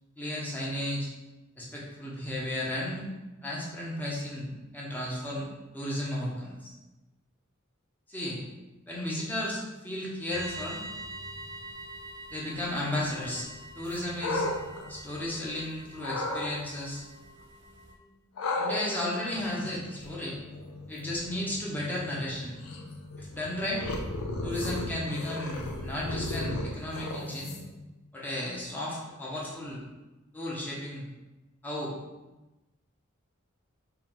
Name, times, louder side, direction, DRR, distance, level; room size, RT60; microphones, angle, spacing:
voice 1, 0.2-1.1 1.6-3.0 3.4-5.5 5.7-6.7 8.1-8.4 8.9-10.8 12.3-13.5 13.8-14.5 14.9-17.0 18.6-20.4 20.9-22.5 23.2-23.8 24.4-27.5 28.1-29.8 30.3-31.0 31.6-31.9, left 1 dB, 10° left, -5 dB, 0.8 m, -34 dB
sound 1, 10.3-17.9, right 2 dB, 55° right, 0.6 m, -45 dB
sound 2, 13.9-15.6 16.0-16.5 18.4-27.8, left 2 dB, 85° left, 0.5 m, -36 dB
4.3 x 2.3 x 3.8 m, 1.1 s
head